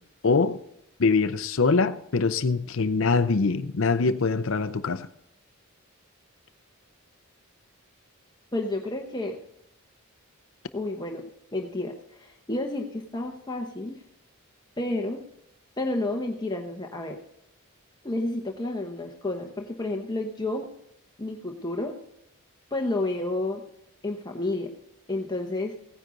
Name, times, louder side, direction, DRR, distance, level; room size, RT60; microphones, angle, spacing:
voice 1, 0.2-0.6 1.0-5.1, left 4 dB, 60° left, 12 dB, 0.6 m, -23 dB
voice 2, 8.5-9.4 10.7-11.2 11.5-14.0 14.8-15.2 15.8-17.2 18.0-20.7 21.2-22.0 22.7-23.6 24.0-24.7 25.1-25.8, left 2 dB, 20° left, 2 dB, 1.0 m, -30 dB
17.0 x 9.9 x 3.9 m, 0.78 s
head